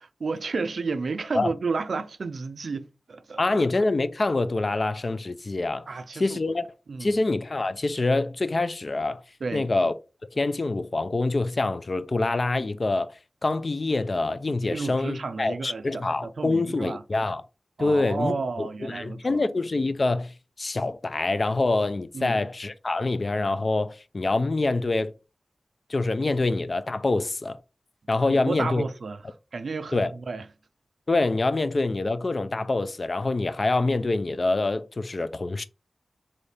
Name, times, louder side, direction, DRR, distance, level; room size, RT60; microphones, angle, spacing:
voice 1, 0.0-3.6 5.9-6.4 6.9-7.2 9.4-9.7 14.7-17.0 17.8-19.4 22.1-22.3 28.3-29.2 29.5-30.4, right 4 dB, 80° right, 0.3 m, -32 dB
voice 2, 3.4-5.9 6.1-6.7 7.0-9.2 9.5-9.9 10.3-13.1 13.4-17.4 17.8-18.4 18.8-25.1 25.9-27.6 28.1-28.8 29.9-30.1 31.1-35.6, left 2 dB, 55° left, 0.4 m, -25 dB
3.3 x 2.6 x 4.1 m
cardioid pair, 50°, 0 cm